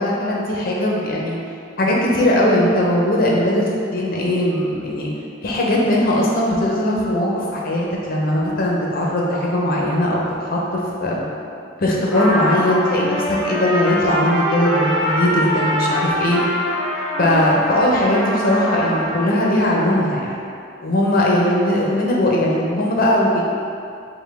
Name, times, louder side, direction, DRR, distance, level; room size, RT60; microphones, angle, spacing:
voice 1, 0.0-1.4 1.8-3.7 3.9-5.1 5.4-10.2 10.5-11.3 11.8-16.4 17.2-20.4 20.8-23.4, left 1 dB, 50° left, -3 dB, 0.7 m, -19 dB
Trumpet, 12.1-19.3, equal, ahead, 0.8 m, -23 dB
5.1 x 2.2 x 3.4 m, 2.4 s
head